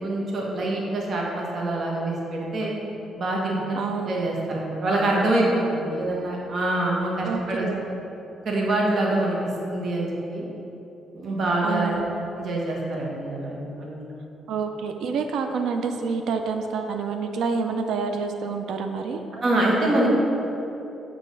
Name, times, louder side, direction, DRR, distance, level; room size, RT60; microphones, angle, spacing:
voice 1, 0.0-2.7 3.2-3.7 4.0-7.7 8.4-9.4 9.7-10.4 11.1-12.0 12.4-14.2 19.3-20.1, right 1 dB, 55° right, -2 dB, 1.2 m, -25 dB
voice 2, 3.7-4.1 7.2-8.0 11.6-12.0 14.5-19.2, right 5 dB, 75° right, 6 dB, 0.5 m, -28 dB
6.3 x 3.3 x 5.3 m, 3.0 s
cardioid pair, 90°, 0 cm